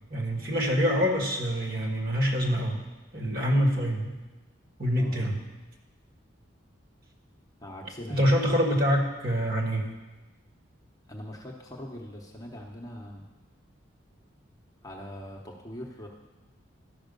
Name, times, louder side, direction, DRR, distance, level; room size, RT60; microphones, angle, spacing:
voice 1, 0.1-2.8 3.1-4.2 4.8-5.4 8.1-9.9, equal, 45° right, 1 dB, 1.6 m, -25 dB
voice 2, 5.0-5.3 7.6-8.3 11.1-13.3 14.8-16.1, equal, 15° left, 0 dB, 0.9 m, -41 dB
12.5 x 5.9 x 5.2 m, 1.1 s
head